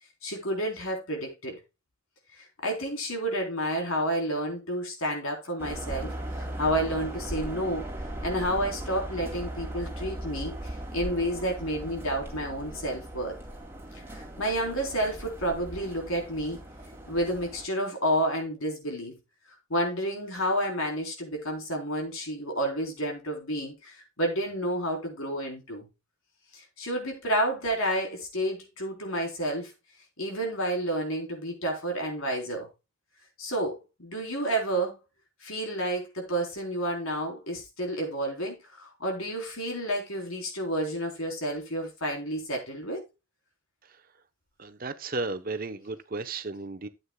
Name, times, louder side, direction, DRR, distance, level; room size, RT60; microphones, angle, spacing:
voice 1, 0.2-1.6 2.3-7.8 8.2-10.5 10.9-13.4 14.1-16.6 17.1-19.2 19.7-25.8 26.5-29.7 30.2-32.7 33.4-35.0 35.4-43.0, right 1 dB, 80° left, 3.7 m, -30 dB
sound 1, 5.6-17.7, right 1 dB, 10° right, 2.4 m, -38 dB
voice 2, 44.6-46.9, right 3 dB, 45° right, 0.8 m, -34 dB
13.0 x 8.2 x 2.2 m
head